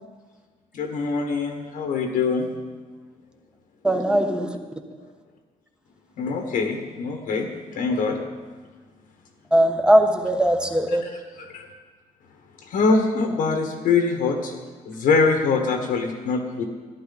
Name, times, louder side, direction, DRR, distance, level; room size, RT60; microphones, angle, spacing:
voice 1, 0.7-2.5 6.2-7.5 7.7-8.2 10.9-11.7 12.6-14.5 14.8-16.6, left 4 dB, 80° left, 2 dB, 1.5 m, -23 dB
voice 2, 3.8-4.5 9.5-11.0, right 1 dB, 5° right, 5 dB, 1.3 m, -19 dB
14.0 x 11.0 x 4.2 m, 1.4 s
cardioid pair, 90°, 14 cm